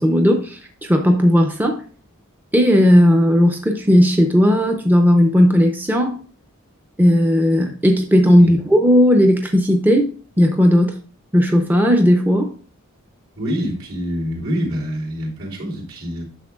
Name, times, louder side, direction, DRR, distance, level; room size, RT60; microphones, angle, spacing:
voice 1, 0.0-1.8 2.5-6.2 7.0-10.1 10.4-11.0 11.3-12.5, equal, 10° right, 0.6 m, -15 dB
voice 2, 13.4-16.2, equal, 75° right, 3.5 m, -26 dB
9.9 x 6.7 x 2.4 m
head